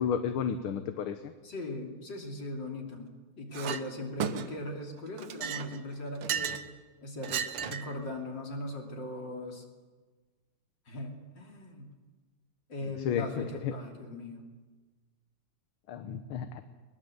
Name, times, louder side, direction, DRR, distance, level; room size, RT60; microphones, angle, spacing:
voice 1, 0.0-1.3 12.8-13.7 15.9-16.6, left 8 dB, 75° left, 9 dB, 1.8 m, -32 dB
voice 2, 1.4-6.6 7.0-9.6 10.9-11.9 12.7-14.4, left 2 dB, 55° left, 1 dB, 3.8 m, -39 dB
Chink clink, 3.5-3.8 4.2-4.7 5.2-6.7 7.2-8.0, right 8 dB, 80° right, 1.9 m, -34 dB
21.5 x 20.0 x 7.9 m, 1.4 s
omnidirectional pair, 2.4 m